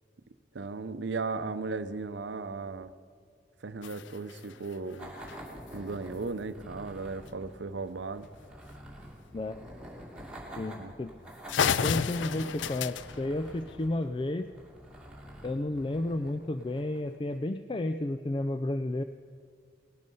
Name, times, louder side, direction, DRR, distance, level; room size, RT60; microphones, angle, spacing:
voice 1, 0.5-2.9 3.6-5.1 5.7-8.3 10.8-10.9, right 3 dB, 80° right, 12 dB, 0.7 m, -36 dB
sound 1, 3.8-5.8 7.3-7.4 7.7-7.8 8.2-8.4 9.3-9.5 10.2-10.3 10.8-10.9 11.2-11.3 11.5-14.2, left 7 dB, 90° left, 0.4 m, -33 dB
sound 2, 5.0-17.2, equal, 5° right, 2.2 m, -47 dB
voice 2, 10.6-11.1 11.8-14.5 15.4-19.0, left 1 dB, 25° left, 10 dB, 0.4 m, -32 dB
18.5 x 12.0 x 5.5 m, 2.1 s
head